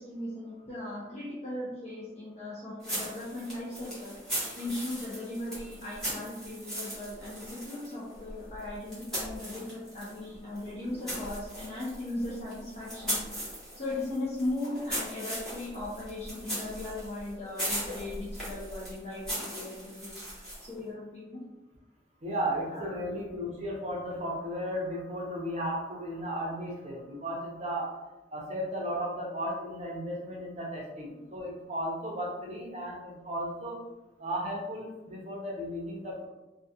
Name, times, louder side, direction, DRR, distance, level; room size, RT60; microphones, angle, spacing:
voice 1, 0.0-4.2 4.6-13.2 13.8-19.3 19.5-20.2 20.6-21.4 22.7-23.0, left 2 dB, 35° left, -7 dB, 0.4 m, -38 dB
sound 1, 2.8-10.2 10.5-20.8, equal, 5° left, 1.0 m, -39 dB
voice 2, 22.2-27.9 28.3-33.8 34.2-36.3, equal, 40° right, -2 dB, 0.6 m, -35 dB
2.3 x 2.1 x 2.6 m, 1.0 s
head